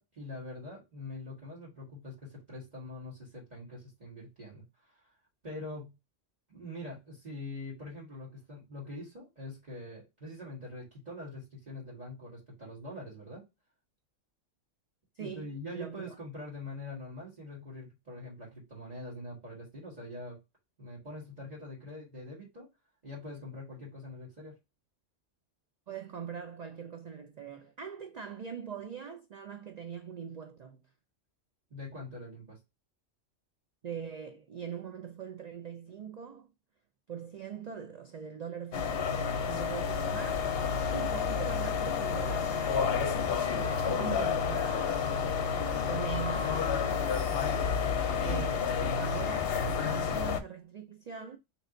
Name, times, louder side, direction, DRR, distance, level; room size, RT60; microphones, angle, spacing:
voice 1, 0.0-5.0 5.4-5.9 6.5-13.4 15.2-20.4 20.8-22.7 23.0-24.6 31.7-32.6 47.8-48.0, left 2 dB, 35° right, 1.9 m, -44 dB
voice 2, 15.2-16.1 25.9-30.8 33.8-36.5 37.1-40.5 40.9-47.6 48.2-48.6 49.0-51.4, right 7 dB, 75° right, 0.3 m, -42 dB
sound 1, 38.7-50.4, left 6 dB, 60° left, 0.8 m, -30 dB
3.2 x 3.0 x 3.7 m
omnidirectional pair, 1.3 m